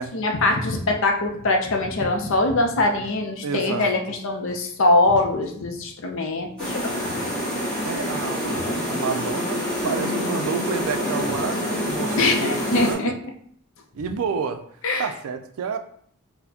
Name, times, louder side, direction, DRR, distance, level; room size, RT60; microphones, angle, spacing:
voice 1, 0.1-7.1 12.2-13.1 14.8-15.1, left 2 dB, 65° left, 3 dB, 0.6 m, -22 dB
voice 2, 3.4-3.9 7.8-9.6 9.8-13.1 13.9-14.6 15.0-15.8, right 6 dB, 80° right, 8 dB, 0.4 m, -29 dB
sound 1, 6.6-12.9, left 1 dB, 5° left, 1.3 m, -26 dB
4.1 x 2.1 x 2.8 m, 0.62 s
head